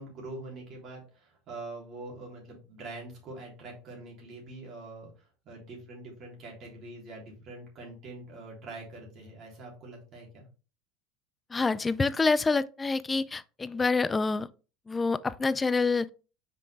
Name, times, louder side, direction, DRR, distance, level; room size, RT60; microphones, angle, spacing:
voice 1, 0.0-10.4, right 2 dB, 40° right, 3.4 m, -44 dB
voice 2, 11.5-14.5 14.9-16.1, left 4 dB, 15° left, 0.3 m, -27 dB
5.8 x 4.9 x 3.4 m
cardioid pair, 150°, 0 cm